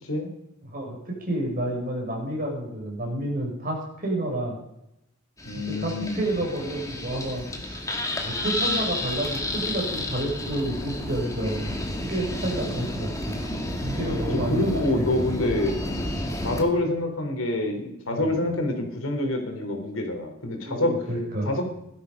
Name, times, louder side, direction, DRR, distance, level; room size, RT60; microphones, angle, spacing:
voice 1, 0.7-4.6 5.5-7.9 8.2-11.7 12.0-13.3 13.8-14.7 15.0-15.2 16.4-16.6 18.1-18.4 20.6-21.5, right 1 dB, 45° right, -1 dB, 6.0 m, -30 dB
voice 2, 5.4-6.3 14.5-15.8 16.4-20.9 21.5-21.6, left 1 dB, 85° left, 3 dB, 3.6 m, -26 dB
sound 1, 5.4-16.6, left 1 dB, 15° left, 2.1 m, -31 dB
16.5 x 12.5 x 5.4 m, 0.83 s
head